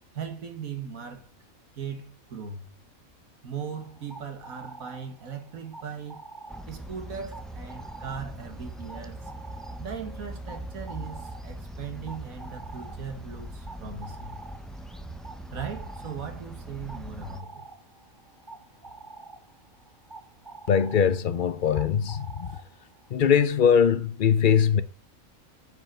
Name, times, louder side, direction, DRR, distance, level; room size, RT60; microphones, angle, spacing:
voice 1, 0.1-1.3 1.7-2.6 3.4-6.2 6.7-9.3 9.8-14.4 15.5-17.7, right 6 dB, 80° right, 1.9 m, -38 dB
sound 1, 3.7-23.1, right 3 dB, 20° right, 1.1 m, -48 dB
sound 2, 6.5-17.4, right 1 dB, ahead, 0.3 m, -41 dB
voice 2, 20.7-22.6 23.1-24.8, left 7 dB, 50° left, 0.7 m, -21 dB
9.4 x 5.5 x 6.0 m
omnidirectional pair, 1.4 m